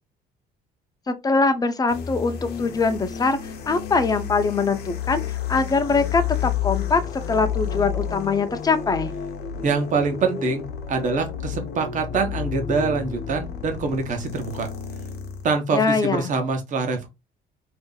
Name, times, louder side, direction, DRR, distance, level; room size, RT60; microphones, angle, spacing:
voice 1, 1.1-3.4 3.7-5.2 5.5-7.0 7.3-9.1 15.7-16.3, left 4 dB, 20° left, 0.6 m, -22 dB
sound 1, 1.9-15.5, left 8 dB, 65° left, 0.9 m, -31 dB
voice 2, 9.6-14.7 15.4-17.1, right 4 dB, 50° right, 1.0 m, -25 dB
2.8 x 2.6 x 3.8 m
cardioid pair, 110°, 17 cm